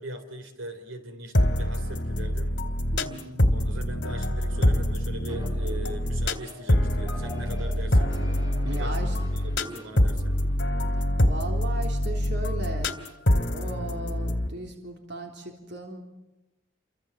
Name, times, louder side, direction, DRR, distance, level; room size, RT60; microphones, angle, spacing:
voice 1, 0.0-2.6 3.5-8.1 8.7-10.4, right 1 dB, 80° right, 9 dB, 3.7 m, -40 dB
sound 1, 1.3-14.5, left 1 dB, 60° left, 2.6 m, -25 dB
voice 2, 2.9-3.4 8.6-9.2 11.2-13.1 13.5-16.0, right 1 dB, 55° right, 3 dB, 3.6 m, -37 dB
sound 2, 4.5-11.0, left 1 dB, 20° right, 3.2 m, -46 dB
29.5 x 25.0 x 7.4 m, 0.97 s
head